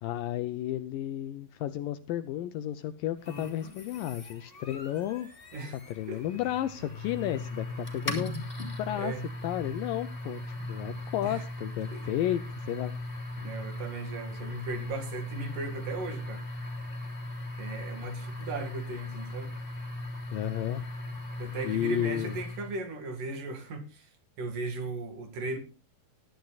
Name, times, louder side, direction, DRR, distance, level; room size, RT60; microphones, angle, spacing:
voice 1, 0.0-5.3 5.7-8.3 8.8-9.1 9.4-10.4 10.7-12.9 20.3-20.8 21.6-22.4, left 12 dB, 75° left, 2.1 m, -32 dB
sound 1, 3.2-22.8, left 2 dB, 15° left, 2.5 m, -38 dB
voice 2, 8.9-9.3 11.2-11.4 11.9-12.1 13.4-16.5 17.6-19.5 21.4-24.1 24.4-25.6, right 3 dB, 60° right, 3.5 m, -37 dB
20.5 x 11.5 x 2.4 m
omnidirectional pair, 4.4 m